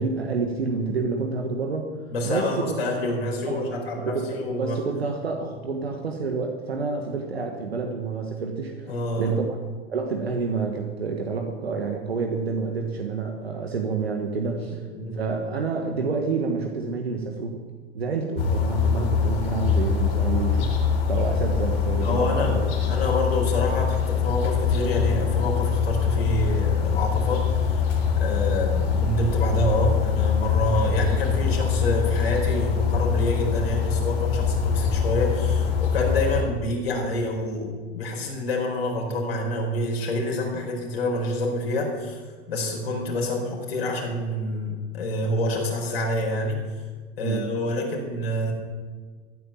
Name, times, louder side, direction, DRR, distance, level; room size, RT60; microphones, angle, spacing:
voice 1, 0.0-1.9 2.2-2.8 3.5-9.6 9.9-14.8 15.1-17.6 17.9-20.7 21.1-22.7 47.2-47.5, right 4 dB, 80° right, 3 dB, 1.5 m, -28 dB
voice 2, 2.1-4.8 8.9-9.3 14.7-15.2 22.0-22.6 22.9-42.2 42.5-46.6 47.2-48.5, left 1 dB, 75° left, -1 dB, 4.6 m, -27 dB
sound 1, 18.4-36.4, left 6 dB, 50° left, 4.2 m, -23 dB
15.0 x 9.1 x 7.5 m, 1.5 s
figure-of-eight pair, 80°, 31 cm